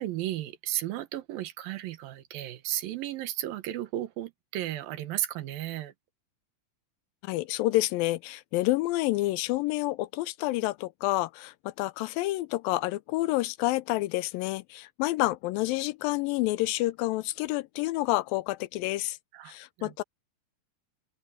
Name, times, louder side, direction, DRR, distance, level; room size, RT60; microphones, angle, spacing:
voice 1, 0.0-5.9 19.3-19.9, right 13 dB, 80° right, 2.9 m, -34 dB
voice 2, 7.2-19.2 19.5-20.0, left 18 dB, 85° left, 2.3 m, -29 dB
open air
omnidirectional pair, 4.1 m